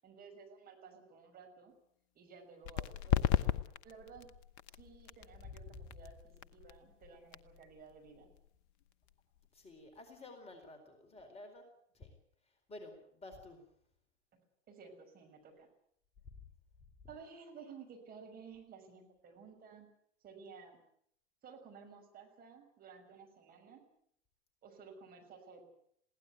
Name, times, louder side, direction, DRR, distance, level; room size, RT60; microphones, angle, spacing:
voice 1, 0.0-1.7 2.1-3.4 3.8-4.3 4.7-8.3 14.3-15.7 17.1-19.9 20.2-20.8 21.4-23.8 24.6-25.7, right 5 dB, 25° right, 2 dB, 6.1 m, -55 dB
sound 1, 2.6-10.0, left 11 dB, 35° left, 1.0 m, -38 dB
voice 2, 9.5-11.6 11.9-12.1 12.7-13.6, left 2 dB, 15° left, 4 dB, 4.2 m, -52 dB
22.0 x 16.5 x 9.3 m, 0.70 s
figure-of-eight pair, 95°, 36 cm